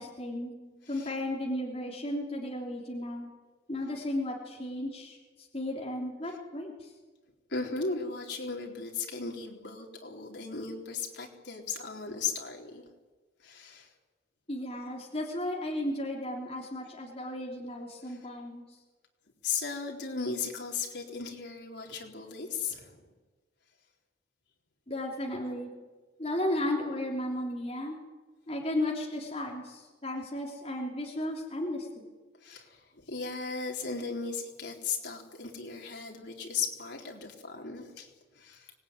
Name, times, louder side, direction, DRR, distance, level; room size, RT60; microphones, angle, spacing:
voice 1, 0.0-3.3 3.7-6.9 14.5-18.6 24.9-25.9 26.2-28.0 28.5-32.0, left 1 dB, 35° left, -2 dB, 3.4 m, -34 dB
voice 2, 7.5-12.8 13.4-13.9 18.0-18.2 19.4-23.0 32.4-38.7, left 5 dB, 75° left, 1 dB, 3.8 m, -36 dB
24.5 x 19.0 x 9.7 m, 1.3 s
head